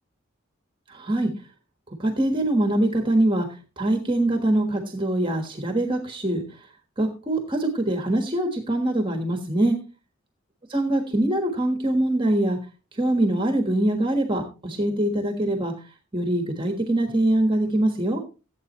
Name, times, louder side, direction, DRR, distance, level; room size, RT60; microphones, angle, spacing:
voice 1, 0.9-1.3 2.0-6.7 7.0-9.8 10.7-12.6 12.9-18.2, right 1 dB, 25° right, 5 dB, 1.4 m, -23 dB
16.0 x 8.3 x 3.0 m, 0.32 s
head